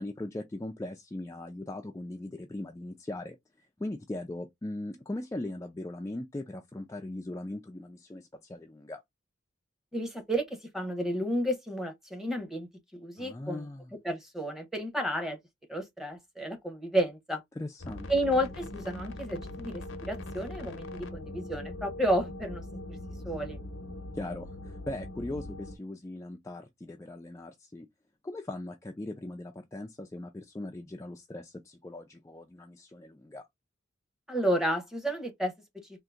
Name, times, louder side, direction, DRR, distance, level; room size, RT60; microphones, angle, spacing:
voice 1, 0.0-9.0 13.2-13.9 17.6-18.1 24.1-27.9 28.2-33.5, left 1 dB, 15° left, 0.3 m, -39 dB
voice 2, 9.9-13.7 14.0-15.4 15.7-17.4 18.1-22.6 23.2-23.6 34.3-35.5, equal, ahead, 0.8 m, -31 dB
sound 1, 17.8-25.8, left 1 dB, 90° left, 0.7 m, -41 dB
3.8 x 2.5 x 2.4 m
head